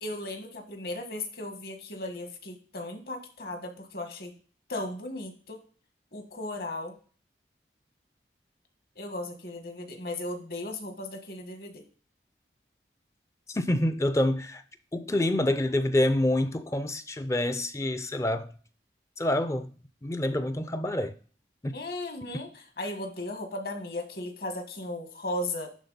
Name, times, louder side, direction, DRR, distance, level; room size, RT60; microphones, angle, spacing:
voice 1, 0.0-4.3 4.7-5.6 6.1-6.9 9.0-11.8 21.7-25.7, left 1 dB, 55° left, 1.4 m, -36 dB
voice 2, 13.5-14.6 14.9-18.5 19.2-19.7 20.0-21.1 21.6-21.8, left 1 dB, 15° left, 0.4 m, -27 dB
11.0 x 3.8 x 3.9 m
head